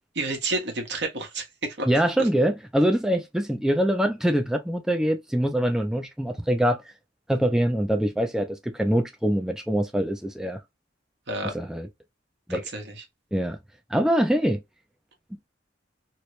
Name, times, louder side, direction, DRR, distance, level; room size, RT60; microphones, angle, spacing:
voice 1, 0.1-1.9 2.2-2.3 11.3-11.5 12.5-12.9, right 2 dB, 65° right, 1.3 m, -30 dB
voice 2, 1.8-6.9 7.3-10.6 11.5-11.9 12.5-12.6 13.3-13.6 13.9-14.6, equal, 5° right, 0.3 m, -24 dB
3.0 x 2.8 x 3.0 m
head